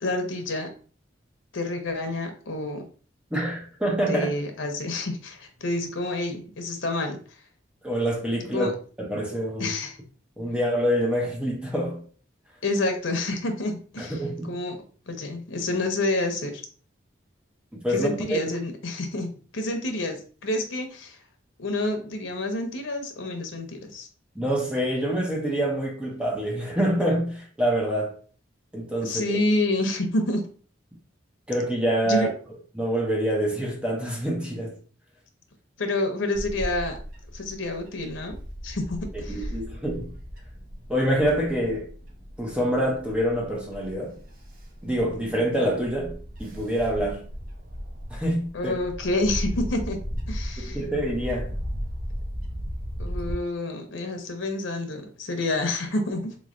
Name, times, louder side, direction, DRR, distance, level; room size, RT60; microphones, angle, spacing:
voice 1, 0.0-0.7 1.5-2.9 4.1-7.2 8.5-8.7 9.6-10.0 12.6-14.2 14.5-14.8 15.1-16.6 17.9-21.2 21.6-24.1 29.0-30.5 32.1-32.3 35.8-37.0 37.3-38.4 38.6-39.5 48.5-50.0 50.3-50.8 53.0-56.4, left 2 dB, 80° left, 0.8 m, -28 dB
voice 2, 3.3-4.3 7.8-8.7 9.0-9.8 10.4-12.0 14.0-14.6 17.7-18.4 24.4-28.2 28.7-29.4 31.5-32.3 32.7-34.8 39.3-40.1 40.9-41.9 42.4-44.2 44.8-47.3 48.1-48.7 50.6-51.5, equal, 5° right, 0.6 m, -26 dB
Bird / Wind, 36.3-53.3, equal, 50° right, 0.8 m, -36 dB
3.7 x 3.1 x 2.5 m
head